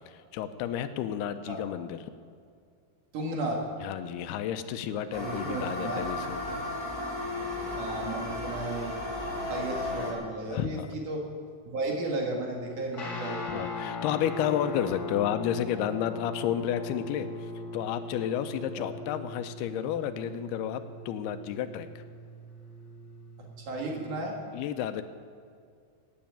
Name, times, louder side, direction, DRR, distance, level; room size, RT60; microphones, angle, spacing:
voice 1, 0.1-2.0 3.8-6.4 10.5-10.9 13.5-22.0 24.5-25.0, left 10 dB, 80° left, 10 dB, 2.6 m, -31 dB
voice 2, 3.1-3.6 5.2-6.0 6.5-6.6 7.7-9.0 9.4-11.2 11.7-13.6 18.8-18.9 23.4-24.3, right 2 dB, 55° right, 0 dB, 3.2 m, -34 dB
sound 1, 5.1-10.1, left 2 dB, 5° left, 2.8 m, -34 dB
Guitar, 12.9-24.4, left 2 dB, 30° left, 2.4 m, -40 dB
16.0 x 9.4 x 8.9 m, 2.2 s
omnidirectional pair, 4.6 m